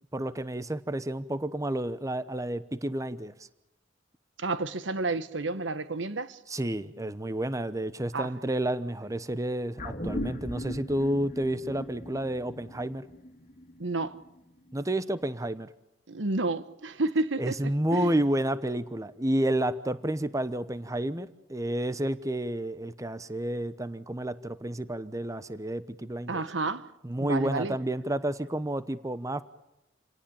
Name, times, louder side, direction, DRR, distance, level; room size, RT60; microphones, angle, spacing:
voice 1, 0.0-3.3 6.5-13.0 14.7-15.7 17.4-26.4 27.0-29.4, right 1 dB, 20° right, 0.9 m, -30 dB
voice 2, 4.4-6.4 8.1-8.3 13.8-14.2 16.1-17.5 17.9-18.1 26.3-26.9 27.2-27.8, right 3 dB, 85° right, 1.3 m, -30 dB
sound 1, 9.8-14.4 14.7-14.8, equal, 45° left, 2.7 m, -38 dB
28.5 x 18.0 x 8.7 m
head